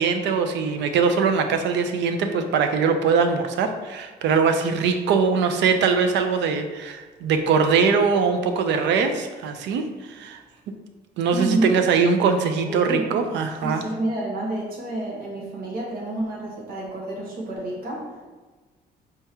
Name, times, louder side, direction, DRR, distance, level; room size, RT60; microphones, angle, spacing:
voice 1, 0.0-10.4 10.7-10.8 11.2-13.8, right 5 dB, 85° right, 7 dB, 0.5 m, -22 dB
voice 2, 11.3-11.7 12.7-13.1 13.6-18.0, right 1 dB, 55° right, -3 dB, 1.3 m, -29 dB
4.4 x 2.9 x 3.5 m, 1.3 s
cardioid pair, 175°, 18 cm